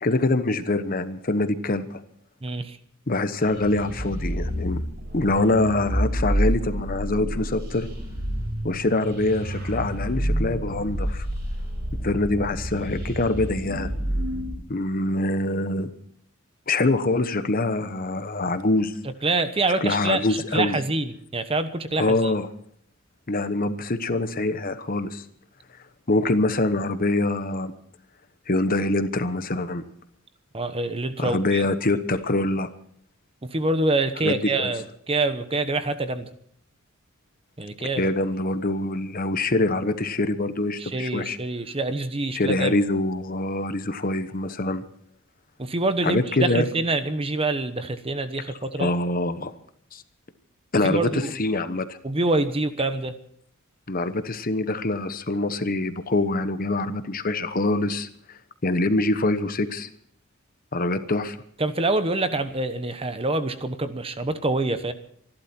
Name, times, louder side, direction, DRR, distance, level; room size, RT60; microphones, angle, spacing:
voice 1, 0.0-2.0 3.1-4.8 5.1-7.9 8.6-11.3 12.0-13.9 14.7-15.9 16.7-18.9 19.8-20.8 22.0-22.5 23.3-25.2 26.1-27.7 28.5-29.8 31.2-32.7 34.2-34.7 38.0-41.4 42.3-44.8 46.0-46.7 48.8-49.5 49.9-50.0 50.7-52.0 53.9-59.9 60.7-61.4, left 2 dB, 45° left, 11 dB, 1.1 m, -24 dB
voice 2, 2.4-2.8 19.2-22.3 30.5-31.6 33.4-36.3 37.6-38.1 40.8-42.8 45.6-48.9 50.8-51.3 52.0-53.2 61.6-64.9, right 2 dB, 25° right, 10 dB, 1.0 m, -26 dB
sound 1, 3.4-14.5, equal, 50° right, 4.8 m, -29 dB
26.5 x 12.0 x 4.5 m, 0.65 s
head